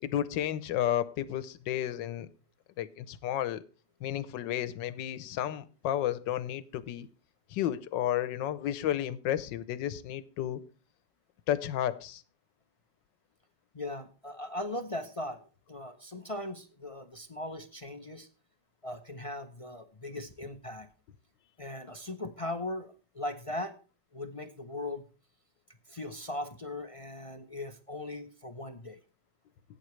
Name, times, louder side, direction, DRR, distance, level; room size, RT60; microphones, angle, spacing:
voice 1, 0.0-2.3 2.8-3.6 4.0-7.1 7.5-10.6 11.5-12.2, left 11 dB, 80° left, 1.5 m, -32 dB
voice 2, 13.7-15.4 15.7-18.3 18.8-20.9 21.6-23.8 24.1-25.0 25.9-29.0, left 1 dB, 40° left, 0.4 m, -39 dB
16.5 x 9.0 x 3.2 m
omnidirectional pair, 1.9 m